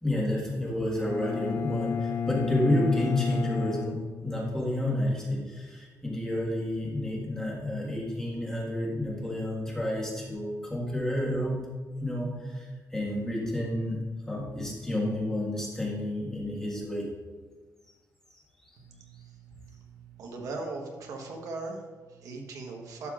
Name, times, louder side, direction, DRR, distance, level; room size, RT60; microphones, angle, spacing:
voice 1, 0.0-11.6 12.0-14.0 14.2-17.1 18.6-18.7, left 1 dB, 10° left, -4 dB, 1.6 m, -30 dB
Bowed string instrument, 1.0-4.8, left 6 dB, 35° left, 0.5 m, -32 dB
voice 2, 18.8-23.1, right 3 dB, 65° right, 1 dB, 1.1 m, -40 dB
11.5 x 6.7 x 2.4 m, 1.4 s
cardioid pair, 175°, 6 cm